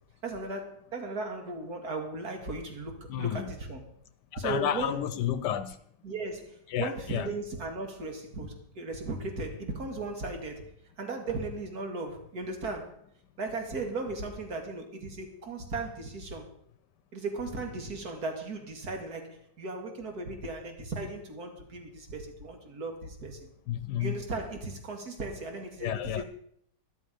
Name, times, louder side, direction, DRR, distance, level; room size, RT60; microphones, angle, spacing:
voice 1, 0.2-3.8 4.4-5.0 6.0-10.7 11.0-13.0 13.4-16.5 17.1-23.5 24.0-26.2, right 3 dB, 60° right, 2.6 m, -36 dB
voice 2, 3.1-3.5 4.4-5.8 6.7-7.3 23.7-24.2 25.8-26.2, left 10 dB, 80° left, 1.3 m, -31 dB
13.0 x 12.0 x 5.2 m
omnidirectional pair, 1.8 m